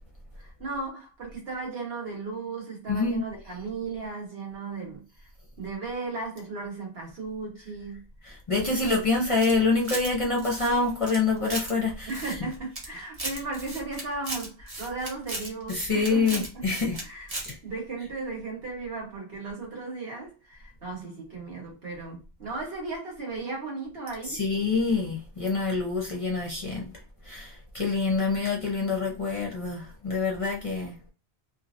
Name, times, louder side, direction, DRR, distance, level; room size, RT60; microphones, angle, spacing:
voice 1, 0.4-5.3 5.6-8.0 12.1-16.4 17.0-17.3 17.6-24.4, right 3 dB, 65° right, 1.4 m, -36 dB
voice 2, 2.9-3.2 8.2-12.1 15.7-17.0 17.4-17.6 24.3-26.9 27.3-30.9, left 3 dB, 35° left, 0.6 m, -26 dB
sound 1, 8.6-10.1 10.4-11.7 12.1-12.9 13.1-17.0 17.3-17.5, right 2 dB, 35° right, 0.9 m, -36 dB
2.8 x 2.5 x 2.5 m
omnidirectional pair, 1.1 m